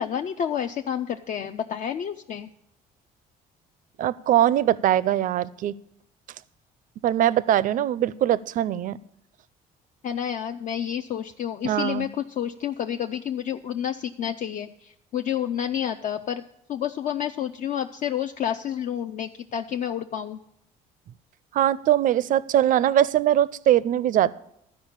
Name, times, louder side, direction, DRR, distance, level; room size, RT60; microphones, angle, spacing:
voice 1, 0.0-2.5 10.0-16.4 16.7-20.4, left 9 dB, 50° left, 6 dB, 0.4 m, -29 dB
voice 2, 4.0-5.7 7.0-9.0 11.6-12.1 21.5-24.4, right 12 dB, 55° right, 19 dB, 0.4 m, -21 dB
12.5 x 5.1 x 8.7 m, 0.78 s
cardioid pair, 110°, 17 cm